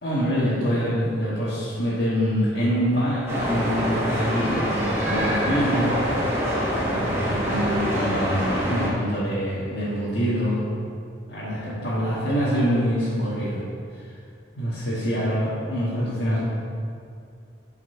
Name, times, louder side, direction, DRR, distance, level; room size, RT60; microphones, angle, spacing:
voice 1, 0.0-6.4 6.7-10.6 11.3-13.6 13.9-14.1 14.6-16.4, equal, 70° left, -11 dB, 1.8 m, -25 dB
sound 1, 3.3-8.9, equal, 15° right, 2.0 m, -25 dB
8.1 x 4.7 x 5.7 m, 2.3 s
head